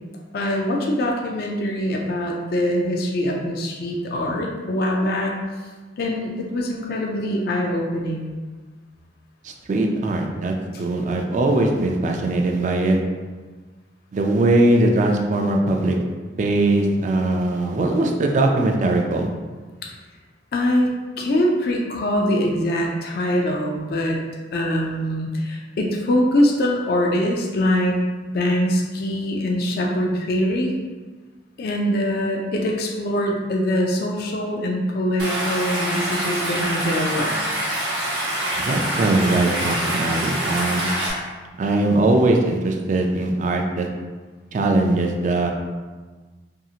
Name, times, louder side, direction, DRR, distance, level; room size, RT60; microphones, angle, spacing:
voice 1, 0.3-5.3 6.0-8.3 20.5-20.9 21.2-24.2 24.5-27.9 28.3-30.8 31.6-37.4, left 1 dB, 55° left, -1 dB, 0.4 m, -23 dB
voice 2, 9.4-13.0 14.1-16.0 16.4-19.3 38.6-40.9 41.6-43.9 44.5-45.5, right 2 dB, 45° right, 2 dB, 0.3 m, -20 dB
Stream, 35.2-41.1, right 1 dB, 80° right, 0.8 m, -25 dB
2.7 x 2.7 x 2.4 m, 1.4 s
head